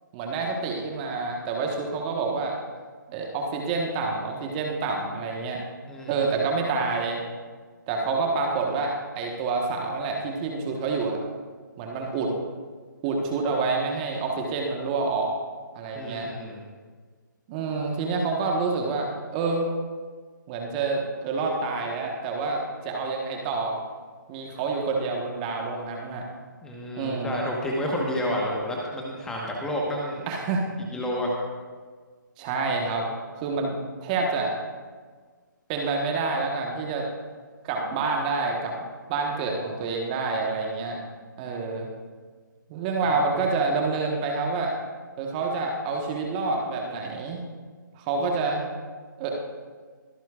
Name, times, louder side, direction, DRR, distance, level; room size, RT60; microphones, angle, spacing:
voice 1, 0.1-2.6 3.1-5.6 6.1-7.2 7.9-11.2 11.8-12.3 13.0-15.3 15.7-16.3 17.5-19.7 20.5-23.8 24.3-26.3 27.0-27.4 30.3-30.7 32.4-33.1 33.4-34.5 35.7-37.1 37.6-38.7 39.1-41.0 41.4-41.9 42.7-44.7 45.2-47.5 47.9-48.6 49.2-49.3, right 4 dB, 25° right, 1 dB, 1.3 m, -27 dB
voice 2, 15.9-16.6 26.6-30.2 30.9-31.3, equal, 5° left, -2 dB, 1.2 m, -30 dB
23.0 x 9.0 x 2.4 m, 1.5 s
figure-of-eight pair, 150°, 11 cm